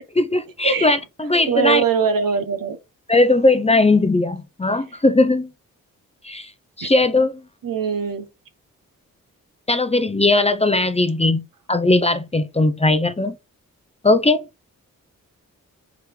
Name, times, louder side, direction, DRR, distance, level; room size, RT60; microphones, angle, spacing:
voice 1, 0.1-1.8 3.1-5.5 6.2-6.5 6.8-7.3 9.7-11.4 11.7-13.3 14.0-14.4, left 2 dB, 20° left, 0.7 m, -18 dB
voice 2, 1.5-2.8 6.8-6.9 7.6-8.3, right 6 dB, 70° right, 0.9 m, -22 dB
3.7 x 2.9 x 4.8 m
supercardioid pair, 45°, 34 cm